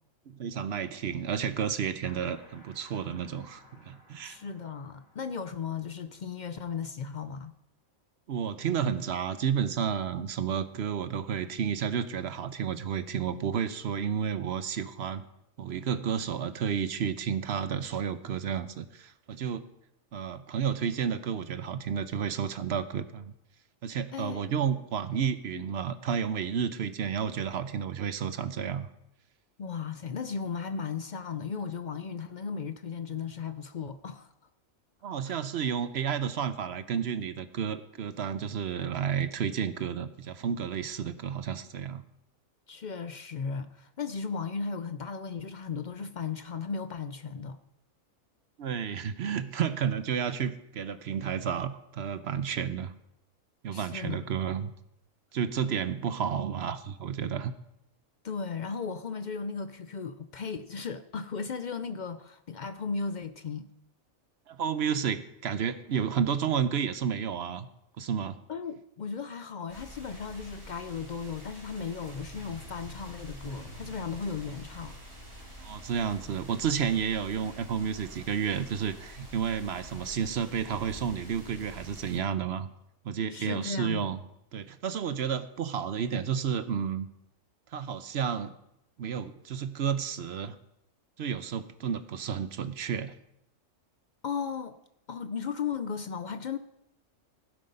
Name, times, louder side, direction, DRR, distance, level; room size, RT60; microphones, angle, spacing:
voice 1, 0.3-4.4 8.3-15.2 15.6-19.7 20.1-23.3 23.8-28.9 35.0-42.0 48.6-52.9 53.6-54.7 55.3-57.5 64.5-67.7 68.0-68.4 75.6-82.7 83.0-84.2 84.5-87.1 87.7-88.5 89.0-90.6 91.2-93.1, right 7 dB, 60° right, 0.8 m, -31 dB
sound 1, 2.0-7.5, left 1 dB, 80° left, 3.4 m, -59 dB
voice 2, 4.2-7.5 24.1-24.6 25.5-25.6 29.6-34.3 35.2-35.4 42.7-47.6 53.7-54.3 58.2-63.7 68.5-75.0 83.3-84.1 94.2-94.8 95.1-96.6, left 5 dB, 60° left, 0.4 m, -36 dB
sound 2, 69.7-82.2, equal, 20° right, 3.2 m, -47 dB
16.0 x 7.7 x 5.4 m
omnidirectional pair, 1.4 m